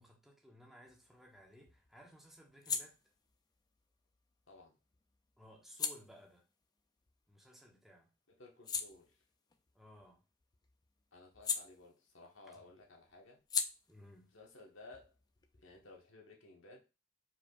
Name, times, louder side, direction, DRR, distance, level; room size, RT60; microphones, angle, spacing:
voice 1, 0.0-3.0 5.4-6.5 7.3-8.1 9.7-10.2 12.5-12.6 13.9-14.3, equal, ahead, 1.1 m, -59 dB
sound 1, 0.9-7.8 8.2-12.4 12.6-16.1, left 6 dB, 20° left, 0.3 m, -44 dB
voice 2, 4.5-4.8 8.3-9.2 11.1-13.4 14.3-15.2 15.6-16.9, left 2 dB, 75° left, 1.5 m, -57 dB
4.9 x 4.4 x 2.5 m
head